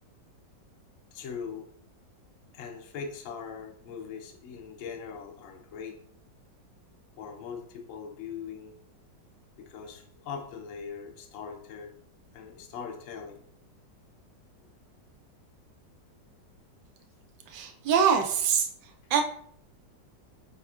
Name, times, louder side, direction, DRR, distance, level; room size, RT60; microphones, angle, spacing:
voice 1, 1.1-1.7 2.5-6.0 7.2-8.7 9.6-11.9 12.3-13.4, left 6 dB, 65° left, 3 dB, 0.8 m, -41 dB
voice 2, 17.5-18.7 19.1-19.2, right 7 dB, 85° right, 4 dB, 1.3 m, -24 dB
5.1 x 3.5 x 2.3 m, 0.62 s
omnidirectional pair, 1.9 m